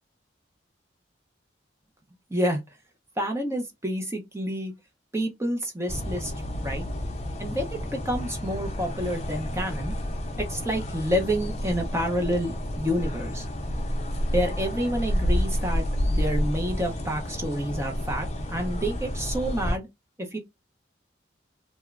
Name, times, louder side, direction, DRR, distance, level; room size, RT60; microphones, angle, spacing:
voice 1, 2.3-2.6 3.2-4.7 5.1-6.3 6.6-6.8 7.4-9.9 10.5-13.5 14.3-19.9 20.2-20.4, equal, 15° right, 0.5 m, -29 dB
sound 1, 5.9-19.8, equal, 35° left, 0.5 m, -30 dB
2.9 x 2.2 x 2.4 m
head